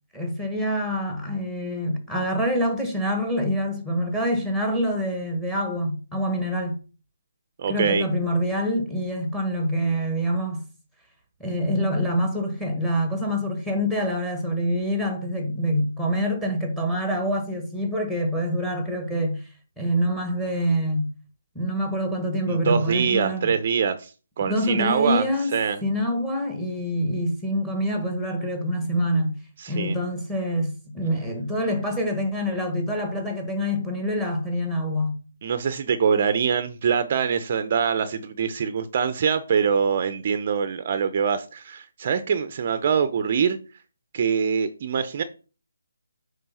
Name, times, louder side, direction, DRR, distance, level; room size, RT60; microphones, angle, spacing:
voice 1, 0.1-6.8 7.7-10.6 11.4-19.5 19.8-21.1 21.5-23.5 24.5-25.5 25.8-29.3 29.7-35.1, equal, 5° left, 1.4 m, -26 dB
voice 2, 7.6-8.0 22.5-24.1 24.4-25.3 25.5-25.8 29.6-30.0 35.4-43.6 44.1-45.2, right 6 dB, 35° right, 0.6 m, -24 dB
8.7 x 3.4 x 5.6 m
hypercardioid pair, 165°, 0 cm